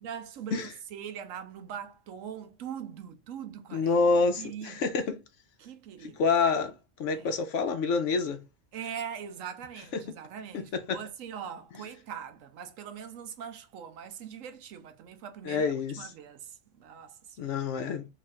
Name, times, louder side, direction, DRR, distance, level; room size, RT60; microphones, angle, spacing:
voice 1, 0.0-4.0 4.4-4.9 5.6-6.2 7.1-7.4 8.7-17.6, right 8 dB, 90° right, 1.1 m, -42 dB
voice 2, 3.7-5.2 6.0-6.7 7.0-8.4 9.9-10.0 10.5-11.0 15.4-16.1 17.4-18.1, left 4 dB, 75° left, 0.9 m, -27 dB
3.1 x 2.4 x 4.1 m
omnidirectional pair, 1.3 m